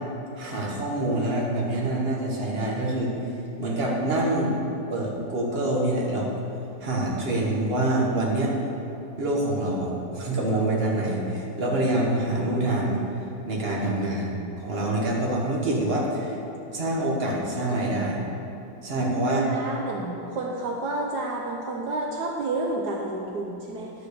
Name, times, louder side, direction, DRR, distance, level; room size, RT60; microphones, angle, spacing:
voice 1, 0.4-3.1 3.6-4.6 4.9-6.3 6.8-8.5 9.2-13.0 13.4-16.3 16.7-18.2 18.8-19.5, right 1 dB, 35° right, -3 dB, 1.6 m, -26 dB
voice 2, 13.7-14.3 19.1-23.9, right 2 dB, 75° right, 0 dB, 1.3 m, -30 dB
10.5 x 4.9 x 6.6 m, 2.8 s
omnidirectional pair, 1.8 m